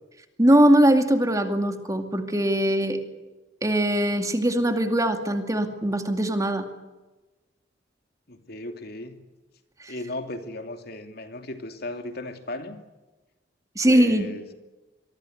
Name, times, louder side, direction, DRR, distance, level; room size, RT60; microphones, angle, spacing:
voice 1, 0.4-3.0 3.6-6.7 9.8-9.9 13.8-14.3, right 1 dB, 20° right, 6 dB, 2.3 m, -21 dB
voice 2, 8.3-9.1 9.9-12.8 13.8-14.5, left 1 dB, 55° left, 6 dB, 2.8 m, -36 dB
25.5 x 23.0 x 8.0 m, 1.1 s
head